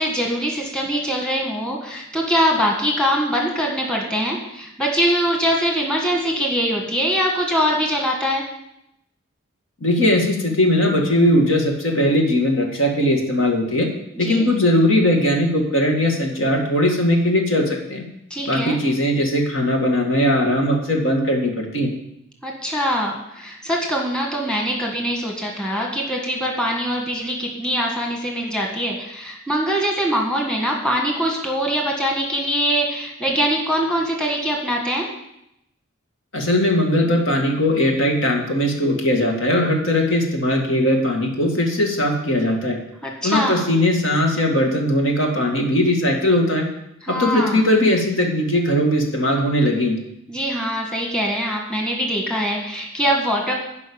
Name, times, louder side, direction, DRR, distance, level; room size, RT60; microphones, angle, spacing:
voice 1, 0.0-8.5 14.1-14.5 18.3-18.8 22.4-35.1 43.0-43.7 47.0-47.6 50.3-53.5, equal, 5° left, -1 dB, 1.8 m, -23 dB
voice 2, 9.8-13.9 14.2-18.0 18.5-21.9 36.3-42.8 43.2-46.7 47.1-50.0, left 1 dB, 65° left, 1 dB, 2.1 m, -19 dB
11.5 x 5.5 x 8.8 m, 0.81 s
head